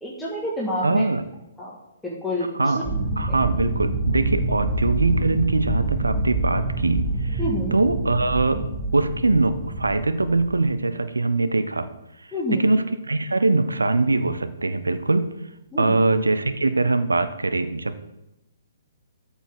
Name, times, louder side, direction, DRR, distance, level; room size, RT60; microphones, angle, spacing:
voice 1, 0.0-1.0 1.6-1.8 2.0-2.9 3.3-3.4 4.5-4.6 7.4-7.8 12.3-12.6 15.7-16.0, equal, 5° left, -7 dB, 1.9 m, -28 dB
voice 2, 0.8-1.3 2.5-2.8 3.2-7.4 7.7-8.6 8.9-11.9 12.5-15.3 15.8-18.1, right 3 dB, 80° right, 11 dB, 0.8 m, -22 dB
sound 1, 2.8-10.7, right 2 dB, 15° right, 1.6 m, -26 dB
13.5 x 7.1 x 3.9 m, 0.90 s
figure-of-eight pair, 125°, 0 cm